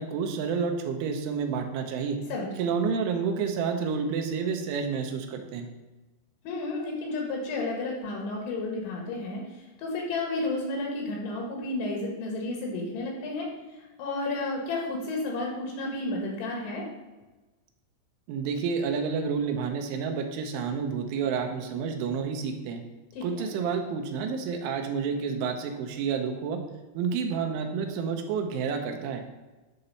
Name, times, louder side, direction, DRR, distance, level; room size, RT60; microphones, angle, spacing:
voice 1, 0.0-2.2 2.6-5.7 18.3-22.8 23.2-26.6 26.9-29.2, right 6 dB, 90° right, 4 dB, 3.3 m, -29 dB
voice 2, 6.4-13.5 13.8-16.9 23.1-23.5, left 2 dB, 75° left, -1 dB, 3.9 m, -32 dB
11.0 x 3.9 x 5.5 m, 1.2 s
omnidirectional pair, 5.4 m